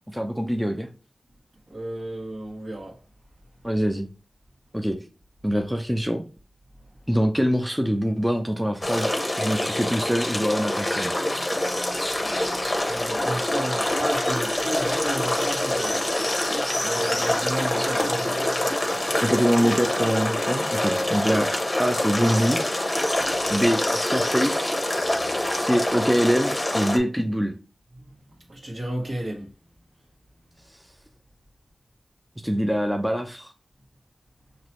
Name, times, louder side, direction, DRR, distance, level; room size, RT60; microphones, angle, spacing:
voice 1, 0.1-0.9 3.6-4.1 4.7-5.0 5.4-6.2 7.1-9.1 9.4-11.2 17.8-17.9 19.2-21.5 21.8-22.6 23.5-24.8 25.5-27.5 32.4-33.5, equal, 5° right, 0.5 m, -24 dB
voice 2, 1.7-3.0 12.8-16.5 16.8-18.7 25.2-25.7 28.5-29.5, right 1 dB, 55° right, 1.7 m, -33 dB
sound 1, 8.8-27.0, left 1 dB, 20° left, 1.0 m, -25 dB
5.9 x 2.9 x 3.0 m
wide cardioid pair, 80°, 0 cm